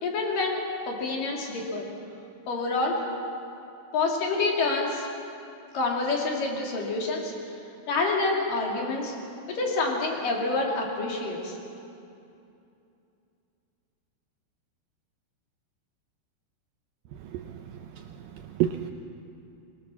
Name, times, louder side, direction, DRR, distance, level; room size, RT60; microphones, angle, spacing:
voice 1, 0.0-1.9 2.5-3.0 3.9-5.1 5.7-7.3 7.9-9.1 9.5-11.6, left 3 dB, 55° left, -1 dB, 4.4 m, -27 dB
voice 2, 17.2-18.9, right 12 dB, 85° right, 6 dB, 2.1 m, -32 dB
23.0 x 23.0 x 7.1 m, 2.6 s
omnidirectional pair, 5.0 m